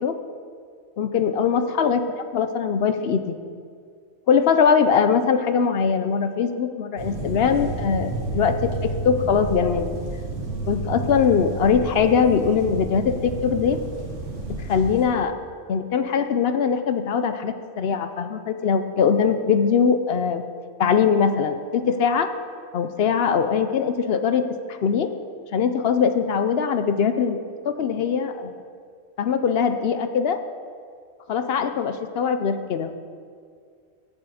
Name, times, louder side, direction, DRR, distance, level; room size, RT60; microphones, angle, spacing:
voice 1, 1.0-2.0 2.3-3.3 4.3-10.0 10.7-13.8 14.5-15.4 15.7-20.4 20.8-22.3 22.7-25.1 25.5-27.4 27.6-28.5 29.2-30.4 31.3-32.9, left 6 dB, 65° left, 9 dB, 0.8 m, -21 dB
sound 1, 7.0-15.1, right 2 dB, 65° right, 1.9 m, -31 dB
7.5 x 7.2 x 7.7 m, 2.2 s
omnidirectional pair, 1.2 m